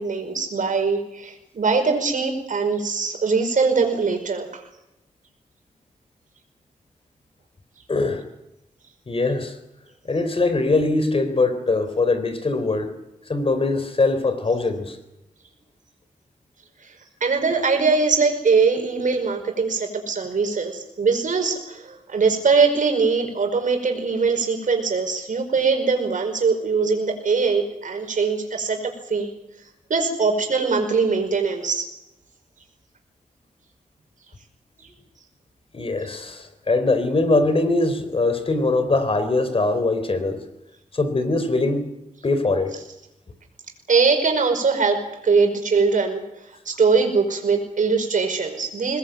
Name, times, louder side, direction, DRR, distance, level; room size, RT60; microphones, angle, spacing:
voice 1, 0.0-4.6 16.8-16.9 17.2-29.3 29.9-31.9 43.9-46.2 46.7-49.0, right 4 dB, 70° right, 5 dB, 5.2 m, -21 dB
voice 2, 7.9-8.2 9.1-9.6 10.0-12.9 13.3-15.0 35.7-40.4 40.9-41.9 42.2-42.8, left 2 dB, 40° left, 9 dB, 3.6 m, -22 dB
22.5 x 20.0 x 9.1 m, 0.91 s
wide cardioid pair, 105°, 14 cm